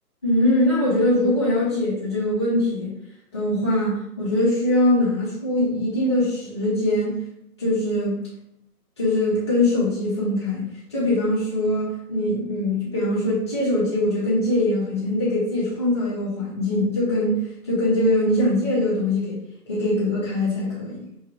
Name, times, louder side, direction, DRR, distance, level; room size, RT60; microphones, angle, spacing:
voice 1, 0.2-2.9 3.3-7.2 7.6-8.2 9.0-19.4 19.7-21.0, left 1 dB, 15° left, -10 dB, 1.1 m, -22 dB
4.6 x 2.3 x 4.8 m, 0.77 s
hypercardioid pair, 175°, 48 cm